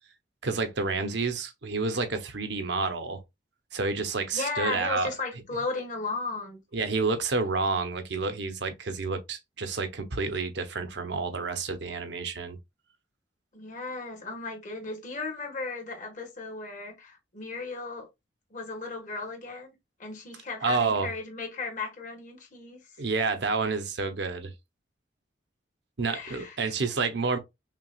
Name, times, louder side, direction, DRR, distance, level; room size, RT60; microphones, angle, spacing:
voice 1, 0.4-3.2 3.7-5.1 6.7-12.6 20.6-21.1 23.0-24.5 26.0-27.4, right 4 dB, 65° right, 0.7 m, -29 dB
voice 2, 4.3-6.6 13.5-18.1 18.5-22.8 26.1-26.6, left 3 dB, 40° left, 1.4 m, -35 dB
5.8 x 2.3 x 2.4 m
head